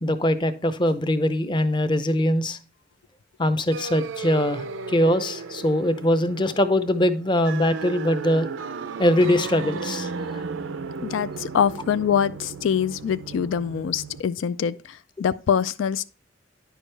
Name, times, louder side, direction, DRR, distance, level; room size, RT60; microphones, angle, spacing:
voice 1, 0.0-2.6 3.4-8.5 9.0-10.4, left 1 dB, 25° left, 0.6 m, -22 dB
sound 1, 3.7-14.2, right 4 dB, 90° right, 0.5 m, -35 dB
voice 2, 11.0-16.1, left 8 dB, 85° left, 0.3 m, -24 dB
10.0 x 6.2 x 3.3 m
head